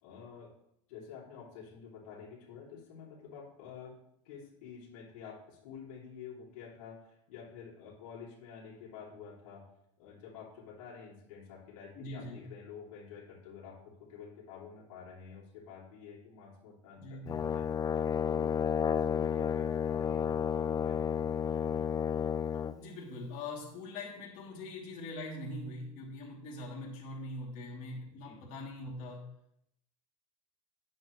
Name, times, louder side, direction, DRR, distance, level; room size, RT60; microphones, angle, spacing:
voice 1, 0.0-0.5 0.9-4.0 4.2-9.7 10.0-21.8 28.2-28.4, left 6 dB, 75° left, -5 dB, 3.1 m, -49 dB
voice 2, 12.0-12.5 17.0-17.4 22.8-29.3, left 2 dB, 50° left, -5 dB, 3.0 m, -42 dB
Brass instrument, 17.3-22.8, left 7 dB, 20° left, 0.4 m, -31 dB
9.7 x 7.9 x 3.2 m, 0.76 s
hypercardioid pair, 100°, 17 cm